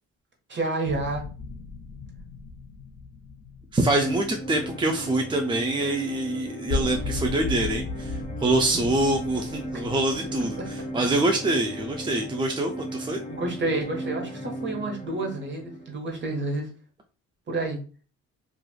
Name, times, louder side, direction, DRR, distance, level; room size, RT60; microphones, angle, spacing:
voice 1, 0.5-1.2 13.3-16.7 17.5-17.8, right 2 dB, 40° right, 2 dB, 1.1 m, -29 dB
sound 1, 0.8-5.7 6.1-6.2 6.5-12.0, left 3 dB, 60° left, 0.5 m, -36 dB
voice 2, 3.7-13.2, right 2 dB, 15° right, 3 dB, 0.4 m, -25 dB
sound 2, 4.0-16.0, right 1 dB, 25° left, 0.7 m, -36 dB
2.9 x 2.4 x 2.3 m, 0.36 s
cardioid pair, 90°, 30 cm